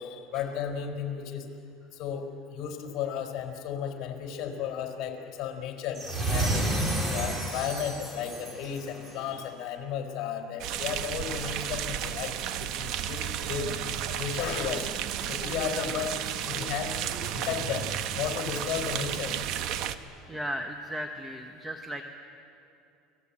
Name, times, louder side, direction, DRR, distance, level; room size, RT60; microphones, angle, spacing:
voice 1, 0.0-1.4 2.0-6.0 6.3-6.6 7.1-12.3 12.6-13.2 13.5-13.7 14.1-14.9 15.3-19.3, left 8 dB, 50° left, 3 dB, 4.7 m, -34 dB
Game wizard sound rpg game, 5.9-9.3, right 1 dB, 25° right, 4.9 m, -30 dB
sound 1, 10.6-19.9, right 10 dB, 55° right, 1.2 m, -33 dB
voice 2, 15.7-16.0 20.3-22.0, equal, 5° right, 4 dB, 1.3 m, -36 dB
29.5 x 20.0 x 8.8 m, 2.7 s
supercardioid pair, 140°, 0 cm